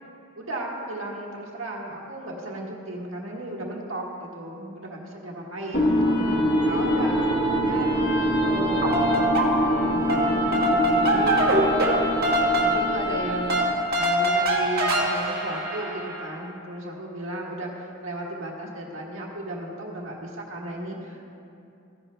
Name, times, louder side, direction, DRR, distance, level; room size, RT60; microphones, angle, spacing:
voice 1, 0.4-9.1 9.5-11.4 12.6-21.2, right 1 dB, 70° right, -2 dB, 1.6 m, -35 dB
sound 1, 5.7-13.9, equal, 55° left, 1.1 m, -24 dB
sound 2, 8.6-9.8 10.1-16.2, right 1 dB, 50° right, 1.6 m, -24 dB
15.0 x 10.5 x 2.2 m, 2.7 s
head